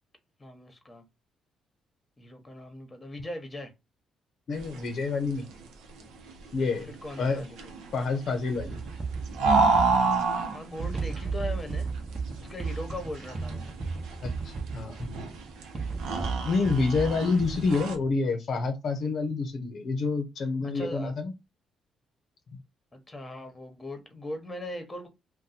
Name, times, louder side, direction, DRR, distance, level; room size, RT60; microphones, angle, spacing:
voice 1, 0.4-1.0 2.2-3.7 6.9-7.7 10.5-11.9 12.4-13.7 20.7-21.1 22.9-25.1, left 1 dB, 20° left, 1.0 m, -39 dB
voice 2, 4.5-5.5 6.5-6.9 7.2-7.4 7.9-8.8 14.2-15.1 16.4-21.3, left 4 dB, 60° left, 0.6 m, -28 dB
sound 1, 4.5-18.0, right 4 dB, 90° right, 0.6 m, -30 dB
sound 2, 8.6-18.1, right 4 dB, 25° right, 0.8 m, -35 dB
2.6 x 2.2 x 4.0 m
cardioid pair, 90°, 0 cm